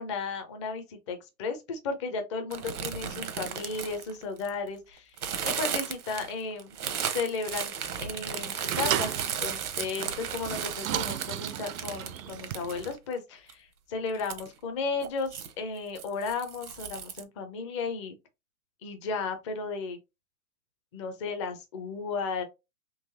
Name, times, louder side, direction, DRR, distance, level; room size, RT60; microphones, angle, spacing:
voice 1, 0.0-5.2 5.4-6.8 7.1-18.1 18.8-20.0 20.9-22.4, left 4 dB, 20° left, 0.5 m, -34 dB
sound 1, 2.5-4.7 5.2-13.1 13.5-13.6 14.2-14.5 15.0-15.5 16.0-17.2, right 7 dB, 85° right, 1.0 m, -35 dB
sound 2, 8.0-12.9, right 12 dB, 65° right, 0.5 m, -35 dB
3.9 x 2.9 x 2.6 m
hypercardioid pair, 145°, 44 cm